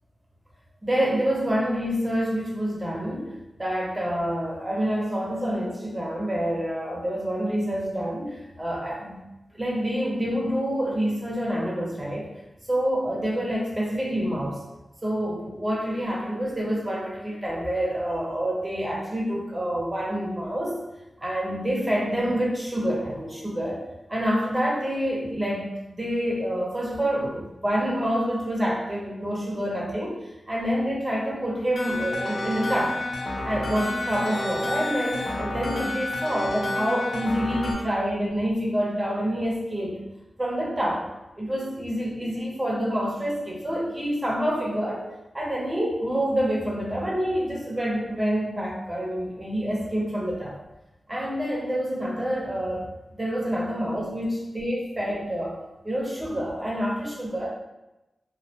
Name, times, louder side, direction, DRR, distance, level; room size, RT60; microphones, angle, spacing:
voice 1, 0.8-9.2 9.5-12.3 12.7-14.6 15.0-20.7 21.2-23.8 24.1-30.2 30.5-33.0 33.4-39.9 40.4-41.0 41.4-45.0 45.3-50.5 51.1-55.5 55.8-57.5, equal, 20° right, -4 dB, 0.6 m, -27 dB
sound 1, 31.7-37.7, left 1 dB, 60° left, 0.3 m, -30 dB
2.2 x 2.1 x 2.7 m, 0.98 s
wide cardioid pair, 120°, 0 cm